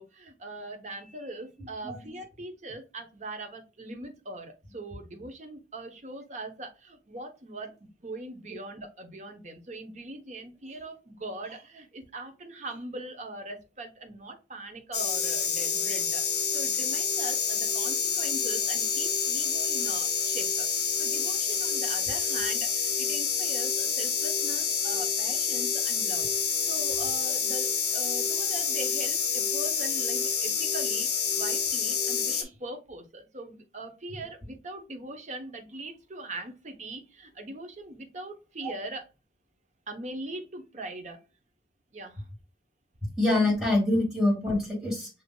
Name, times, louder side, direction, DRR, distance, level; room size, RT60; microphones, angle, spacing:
voice 1, 0.0-20.7 21.0-26.3 26.6-31.1 31.4-39.0 39.9-41.2 41.9-42.2, right 2 dB, 40° right, 5 dB, 0.8 m, -41 dB
sound 1, 14.9-32.4, left 6 dB, 65° left, 1.0 m, -28 dB
voice 2, 43.2-45.1, left 2 dB, ahead, -4 dB, 2.3 m, -25 dB
6.9 x 2.7 x 2.2 m, 0.30 s
head